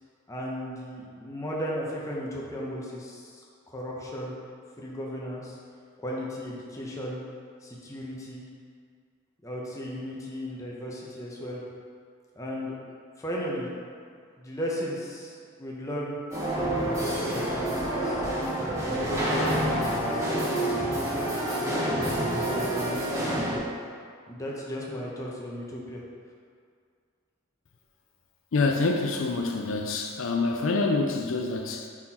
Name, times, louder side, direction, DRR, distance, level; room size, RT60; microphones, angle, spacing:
voice 1, 0.3-3.4 3.7-4.3 4.8-5.6 6.0-7.2 7.6-8.4 9.4-11.6 12.3-12.8 13.2-13.7 14.4-16.2 16.6-18.2 18.8-23.6 24.3-26.0, equal, 15° left, -4 dB, 0.9 m, -35 dB
sound 1, 16.3-23.6, right 1 dB, 15° right, 1.1 m, -28 dB
voice 2, 28.5-31.9, left 3 dB, 70° left, 3 dB, 0.5 m, -26 dB
5.9 x 4.4 x 4.3 m, 2.1 s
head